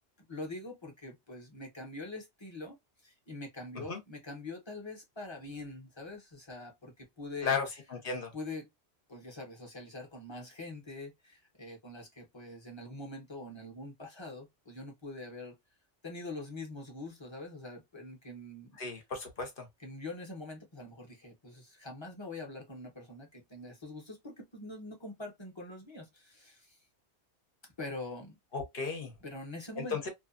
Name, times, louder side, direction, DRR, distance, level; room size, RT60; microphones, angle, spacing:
voice 1, 0.3-2.8 3.0-7.6 8.3-8.7 9.1-15.5 16.0-18.8 19.8-26.8 27.8-28.4 29.2-30.1, left 2 dB, 25° left, 0.9 m, -44 dB
voice 2, 7.4-8.3 18.8-19.7 28.5-29.1 29.8-30.1, left 5 dB, 55° left, 1.0 m, -35 dB
2.8 x 2.3 x 2.4 m
omnidirectional pair, 1.2 m